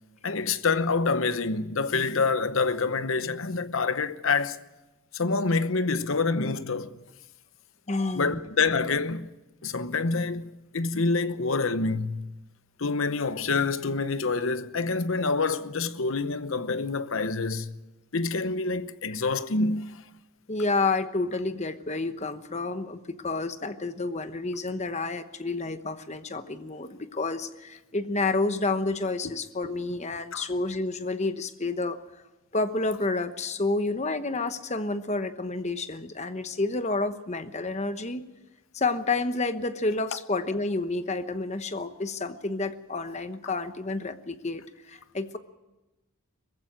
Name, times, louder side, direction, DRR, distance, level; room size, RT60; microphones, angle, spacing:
voice 1, 0.2-4.6 5.1-6.9 8.1-9.3 9.6-12.3 12.8-17.7 18.1-20.0 30.3-30.4, left 4 dB, 65° left, 0.9 m, -27 dB
voice 2, 7.9-8.4 20.5-32.0 32.5-38.2 38.7-45.4, left 3 dB, 30° left, 1.0 m, -29 dB
20.0 x 15.5 x 9.1 m
head